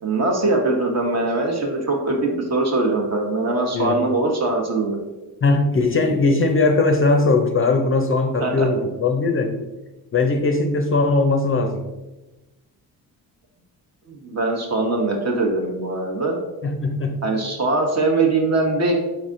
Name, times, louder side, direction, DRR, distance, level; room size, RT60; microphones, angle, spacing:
voice 1, 0.0-5.0 8.4-8.7 14.1-16.4 17.2-18.9, right 2 dB, 40° right, 1 dB, 1.0 m, -22 dB
voice 2, 5.4-9.6 10.1-11.8 16.6-17.2, left 3 dB, 35° left, 4 dB, 0.5 m, -19 dB
4.5 x 4.0 x 2.5 m, 1.1 s
cardioid pair, 85°, 39 cm